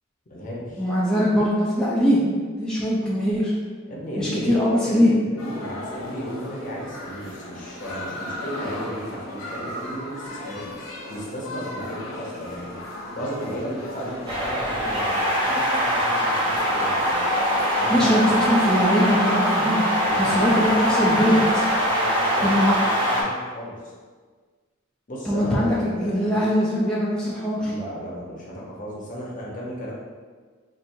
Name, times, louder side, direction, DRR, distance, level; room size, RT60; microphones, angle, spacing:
voice 1, 0.3-0.8 3.9-10.7 11.1-12.8 13.1-17.2 17.8-18.5 20.0-21.5 21.7-23.9 25.1-26.4 27.6-29.9, equal, 40° left, -4 dB, 0.8 m, -34 dB
voice 2, 0.8-2.2 2.6-3.5 4.2-5.1 17.9-19.8 20.2-21.6 22.4-22.7 25.3-27.7, equal, 5° left, -8 dB, 0.5 m, -21 dB
sound 1, 5.4-21.8, left 1 dB, 75° left, 0.7 m, -37 dB
sound 2, 14.3-23.2, equal, 25° right, 0.8 m, -22 dB
4.3 x 2.6 x 2.6 m, 1.5 s
head